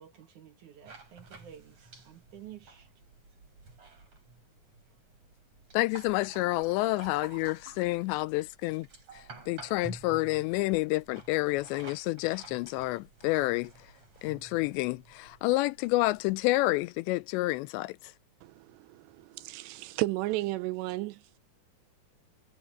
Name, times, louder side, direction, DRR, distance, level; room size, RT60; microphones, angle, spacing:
voice 1, 0.0-2.9, right 10 dB, 60° right, 2.3 m, -51 dB
sound 1, 0.9-16.5, right 3 dB, 35° right, 7.2 m, -51 dB
voice 2, 5.7-8.9 9.5-13.7 14.2-18.0, left 20 dB, 85° left, 2.8 m, -29 dB
voice 3, 18.4-21.2, right 18 dB, 85° right, 2.8 m, -33 dB
omnidirectional pair, 5.1 m